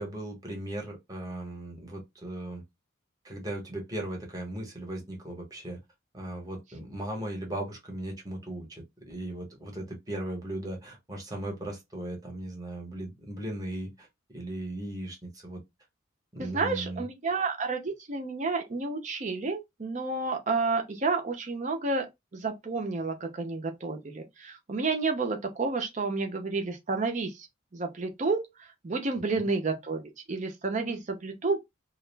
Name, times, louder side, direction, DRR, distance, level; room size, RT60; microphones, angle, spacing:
voice 1, 0.0-2.6 3.2-5.8 6.1-14.1 14.3-15.6 16.3-17.1, right 1 dB, 20° right, 0.8 m, -37 dB
voice 2, 16.4-22.1 22.3-27.5 27.7-28.5 28.8-30.0 30.3-31.6, right 3 dB, 35° right, 0.5 m, -30 dB
2.3 x 2.0 x 3.2 m
head